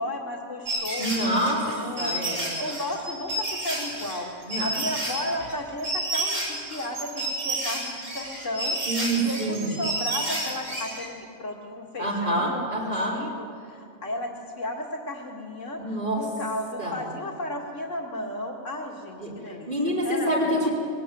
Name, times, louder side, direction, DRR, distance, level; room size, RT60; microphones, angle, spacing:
voice 1, 0.0-8.8 9.2-19.7 20.0-20.7, left 1 dB, 85° left, 0 dB, 2.3 m, -34 dB
sound 1, 0.7-11.1, right 1 dB, 70° right, 7.5 m, -30 dB
voice 2, 1.0-1.6 2.0-2.4 4.5-4.7 8.9-9.7 12.0-13.2 15.8-16.2 16.8-17.0 19.2-19.3 19.7-20.7, right 1 dB, 45° right, -4 dB, 5.0 m, -26 dB
22.0 x 17.5 x 9.2 m, 2.5 s
omnidirectional pair, 1.3 m